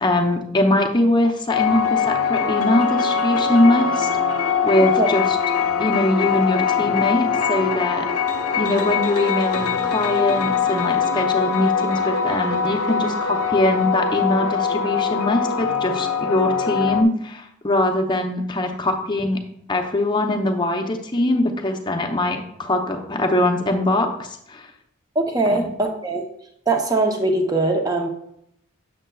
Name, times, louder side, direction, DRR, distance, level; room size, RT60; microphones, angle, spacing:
voice 1, 0.0-5.4 5.8-8.1 8.6-19.4 19.7-24.7 25.5-25.7, left 1 dB, 20° left, 4 dB, 0.6 m, -22 dB
sound 1, 1.5-17.0, left 6 dB, 85° left, 0.6 m, -22 dB
voice 2, 4.8-5.1 25.1-26.2 26.7-28.1, right 2 dB, 15° right, 3 dB, 0.7 m, -21 dB
7.8 x 6.6 x 2.3 m, 0.74 s
head